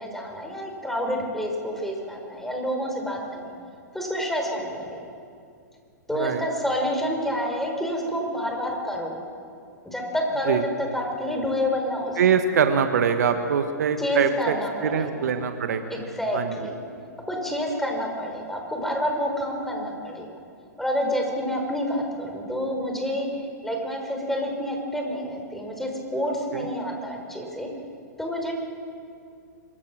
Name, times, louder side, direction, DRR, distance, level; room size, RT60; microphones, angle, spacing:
voice 1, 0.0-3.5 3.9-5.0 6.1-9.2 9.8-12.3 14.0-15.3 15.9-16.7 17.3-20.2 20.8-23.3 23.6-27.7 28.2-28.5, equal, 5° left, 1 dB, 5.1 m, -28 dB
voice 2, 12.2-14.5 14.8-15.9 16.3-16.6 26.5-26.7, right 7 dB, 60° right, 8 dB, 1.6 m, -23 dB
26.0 x 22.5 x 6.4 m, 2.4 s
figure-of-eight pair, 110°, 10 cm